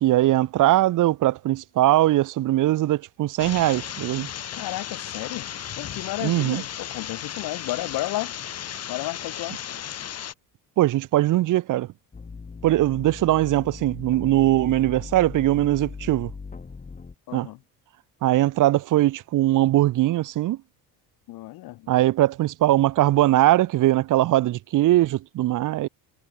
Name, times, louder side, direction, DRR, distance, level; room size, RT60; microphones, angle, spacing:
voice 1, 0.0-4.3 6.2-6.6 10.8-11.9 12.6-16.3 17.3-17.5 18.2-20.6 21.9-25.9, right 15 dB, 50° right, 0.7 m, -21 dB
sound 1, 3.4-10.3, left 9 dB, 35° left, 1.5 m, -35 dB
voice 2, 4.5-5.5 5.8-8.3 8.9-9.6 17.3-17.6 21.3-21.9, left 18 dB, 60° left, 0.8 m, -32 dB
sound 2, 12.1-17.2, left 4 dB, 20° left, 1.6 m, -39 dB
cardioid pair, 110°, 41 cm